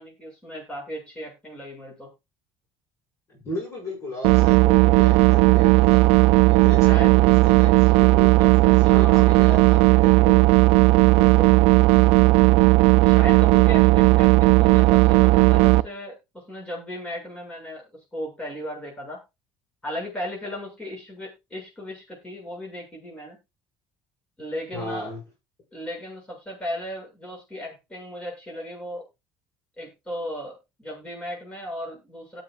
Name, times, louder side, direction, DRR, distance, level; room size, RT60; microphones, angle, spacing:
voice 1, 0.0-2.1 6.9-7.1 8.6-9.6 11.0-11.6 13.0-17.8 18.1-19.2 19.8-23.4 24.4-25.1 25.7-29.1 29.8-32.4, left 1 dB, 15° left, -3 dB, 7.4 m, -36 dB
voice 2, 3.3-6.0 6.5-10.5 24.7-25.2, left 2 dB, 30° left, -2 dB, 7.0 m, -36 dB
sound 1, 4.2-15.8, right 21 dB, 80° right, 0.5 m, -15 dB
18.0 x 6.9 x 2.5 m, 0.24 s
cardioid pair, 115°, 9 cm